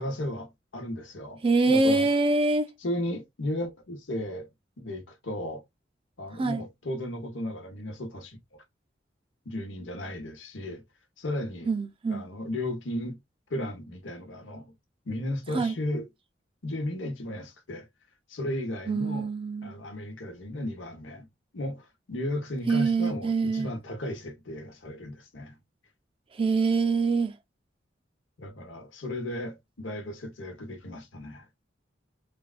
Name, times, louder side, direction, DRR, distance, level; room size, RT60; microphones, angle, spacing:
voice 1, 0.0-2.1 2.8-4.5 4.8-5.6 6.2-8.6 9.4-10.8 11.2-11.7 12.1-13.2 13.5-14.7 15.0-16.1 16.6-17.9 18.3-19.3 19.6-21.3 21.5-25.6 28.4-31.5, left 1 dB, 85° left, 1.0 m, -35 dB
voice 2, 1.4-2.7 6.4-6.6 11.7-12.3 15.5-15.7 18.9-19.7 22.7-23.7 26.3-27.4, right 3 dB, 30° right, 0.4 m, -24 dB
3.3 x 2.2 x 2.4 m
head